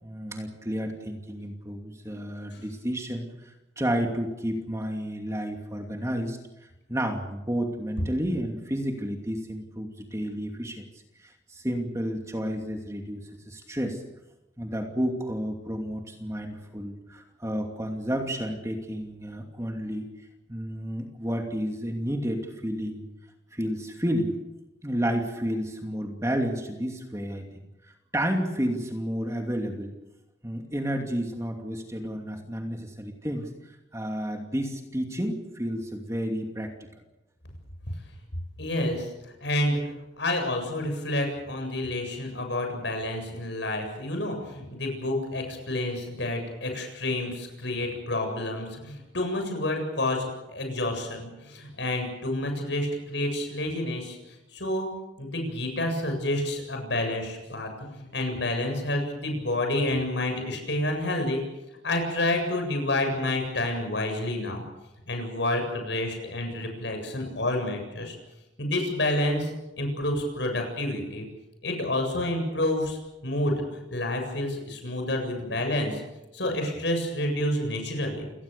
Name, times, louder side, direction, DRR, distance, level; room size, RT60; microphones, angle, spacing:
voice 1, 0.0-6.4 6.9-10.9 11.2-14.0 14.6-20.1 20.5-23.1 23.5-24.3 24.8-27.5 28.1-29.9 30.4-33.5 33.9-36.7, equal, 15° right, 3 dB, 2.6 m, -31 dB
voice 2, 38.6-39.1 39.4-39.8 40.2-54.9 55.2-61.4 61.8-64.6 65.0-68.2 68.6-69.5 69.8-71.3 71.6-76.0 76.3-78.3, left 1 dB, 65° left, 4 dB, 7.7 m, -29 dB
29.0 x 19.0 x 6.9 m, 0.97 s
head